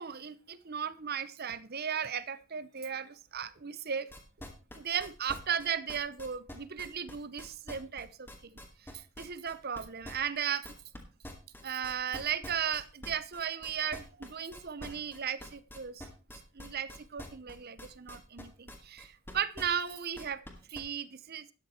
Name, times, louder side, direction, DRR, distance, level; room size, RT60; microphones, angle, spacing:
voice 1, 0.0-4.1 4.7-8.6 8.9-10.7 11.6-16.1 16.5-20.4 20.7-21.5, right 8 dB, 45° right, 15 dB, 0.8 m, -36 dB
sound 1, 4.1-11.0 11.2-20.8, left 1 dB, 10° left, 2.4 m, -46 dB
13.0 x 9.6 x 4.4 m, 0.34 s
head